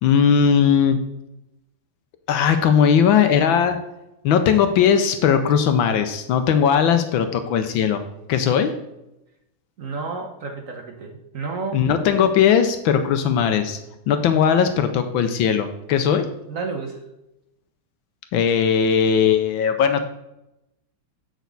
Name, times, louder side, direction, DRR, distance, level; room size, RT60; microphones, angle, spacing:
voice 1, 0.0-1.0 2.3-3.8 4.2-8.7 11.7-13.8 14.1-16.3 18.3-20.0, left 7 dB, 75° left, 8 dB, 1.4 m, -18 dB
voice 2, 9.8-11.8 16.5-17.0, right 4 dB, 50° right, 3 dB, 1.1 m, -31 dB
8.2 x 6.3 x 3.9 m, 0.88 s
omnidirectional pair, 2.3 m